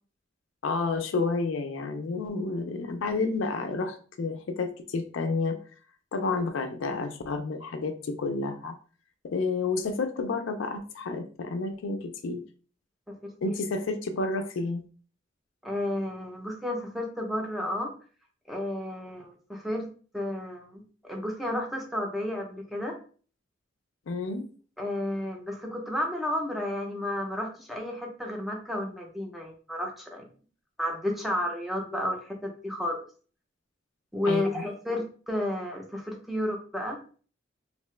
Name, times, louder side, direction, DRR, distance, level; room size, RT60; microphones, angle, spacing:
voice 1, 0.6-5.6 6.1-8.7 9.2-12.4 13.4-14.8 24.1-24.5 34.3-34.7, left 3 dB, 75° left, 7 dB, 0.4 m, -30 dB
voice 2, 15.6-17.9 18.5-19.9 20.1-23.0 24.8-30.3 30.8-33.0 34.1-37.0, left 1 dB, ahead, 1 dB, 0.5 m, -32 dB
2.7 x 2.1 x 3.1 m, 0.41 s
head